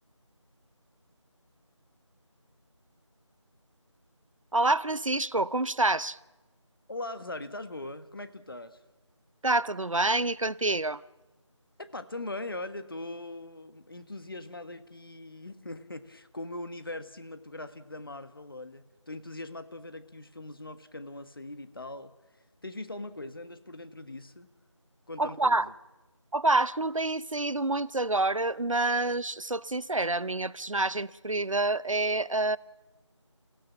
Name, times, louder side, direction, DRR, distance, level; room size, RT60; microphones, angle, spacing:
voice 1, 4.5-6.2 9.4-11.0 25.2-25.7 26.3-32.6, right 2 dB, 85° right, 0.8 m, -27 dB
voice 2, 6.9-8.8 11.8-24.5 25.1-25.7, left 2 dB, 45° left, 1.5 m, -41 dB
29.0 x 17.0 x 7.2 m
figure-of-eight pair, 170°, 16 cm